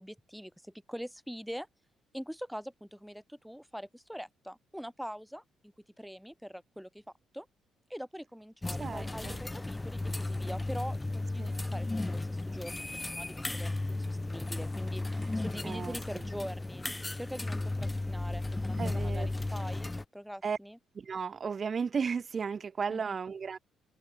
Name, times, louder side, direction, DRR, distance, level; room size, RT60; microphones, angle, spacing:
voice 1, 0.0-1.7 2.1-7.0 7.3-7.5 7.9-15.0 15.3-16.8 17.1-20.8 22.9-23.2, equal, ahead, 4.3 m, -43 dB
sound 1, 8.6-20.0, left 2 dB, 15° left, 0.3 m, -35 dB
voice 2, 8.8-9.4 11.4-11.6 15.2-15.3 15.6-16.3 18.7-19.3 20.4-20.6 20.9-23.6, right 6 dB, 40° right, 0.7 m, -35 dB
open air
cardioid pair, 90°, 0 cm